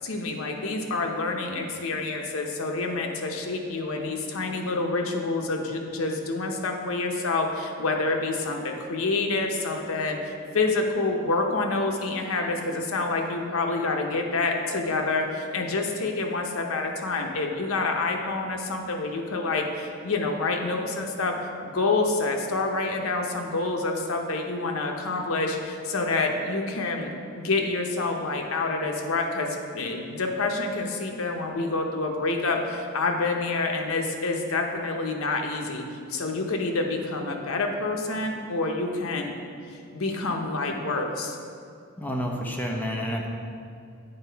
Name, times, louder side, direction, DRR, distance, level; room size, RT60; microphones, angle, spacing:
voice 1, 0.0-21.3 21.6-35.8 36.1-39.3 39.6-41.4, left 3 dB, 80° left, 3 dB, 0.8 m, -27 dB
voice 2, 42.0-43.3, equal, 10° left, 0 dB, 0.7 m, -29 dB
8.8 x 4.1 x 4.5 m, 2.4 s
head